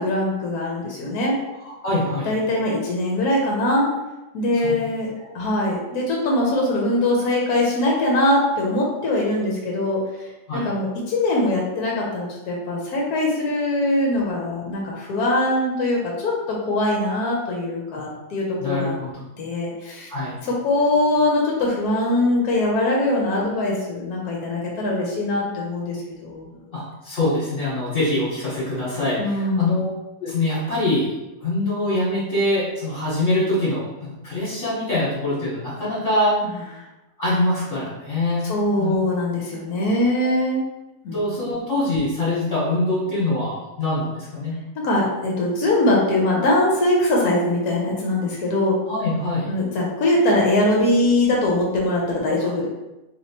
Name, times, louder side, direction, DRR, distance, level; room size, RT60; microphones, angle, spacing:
voice 1, 0.0-1.4 2.2-3.9 4.3-5.1 5.3-10.0 10.5-19.0 19.4-20.1 20.4-26.5 29.2-29.6 36.5-36.6 38.4-40.6 41.0-41.2 44.8-48.8 49.5-52.7, left 1 dB, 65° left, -2 dB, 1.1 m, -22 dB
voice 2, 1.8-2.3 4.6-4.8 5.2-5.3 10.5-10.7 18.6-19.2 20.1-20.3 26.7-29.9 30.2-31.1 31.4-33.9 34.2-36.3 37.2-38.5 38.8-38.9 40.2-40.3 41.1-44.6 48.9-49.5, left 1 dB, 45° left, -10 dB, 1.4 m, -24 dB
3.3 x 2.9 x 2.9 m, 1.0 s
omnidirectional pair, 2.0 m